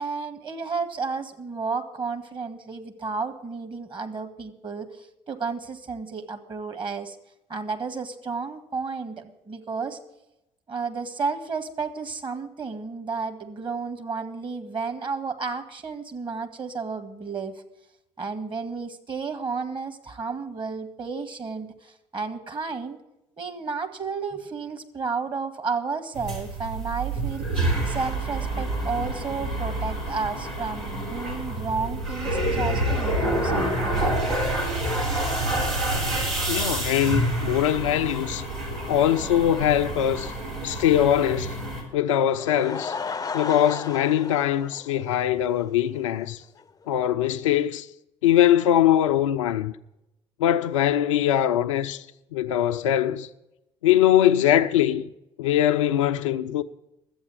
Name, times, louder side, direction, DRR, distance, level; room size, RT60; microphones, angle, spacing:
voice 1, 0.0-7.2 7.5-10.0 10.7-17.6 18.2-23.0 23.4-27.5 27.8-34.1, right 4 dB, 30° right, 1.6 m, -32 dB
sound 1, 26.1-41.8, right 1 dB, 80° right, 3.3 m, -28 dB
voice 2, 36.5-38.4 38.9-40.3 40.6-41.6 41.9-42.9 43.3-46.4 46.9-47.9 48.2-49.7 50.4-52.0 52.3-53.3 53.8-55.1 55.4-56.6, left 11 dB, 75° left, 0.5 m, -22 dB
Laughter / Crowd, 42.2-45.6 46.0-46.1 46.6-46.7 46.9-47.0, left 5 dB, 20° left, 0.6 m, -34 dB
12.0 x 8.5 x 8.6 m
figure-of-eight pair, 50°, 16 cm